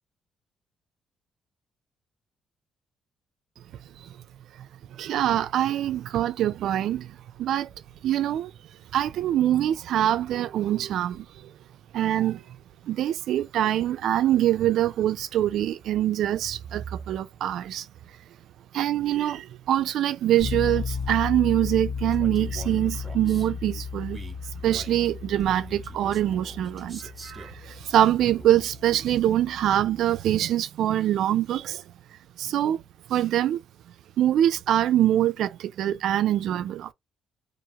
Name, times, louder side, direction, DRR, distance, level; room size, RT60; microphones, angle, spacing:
voice 1, 5.0-7.7 8.0-8.5 8.9-11.5 11.9-12.4 12.8-17.9 18.7-24.2 24.6-31.8 32.4-32.8 33.1-33.6 34.2-36.9, right 12 dB, 75° right, 0.3 m, -24 dB
Bass guitar, 20.4-30.1, left 5 dB, 50° left, 1.3 m, -35 dB
Male speech man speaking, 22.1-23.5 24.1-27.6 28.1-28.8, right 3 dB, 30° right, 0.9 m, -44 dB
2.8 x 2.5 x 2.7 m
cardioid pair, 90°, 0 cm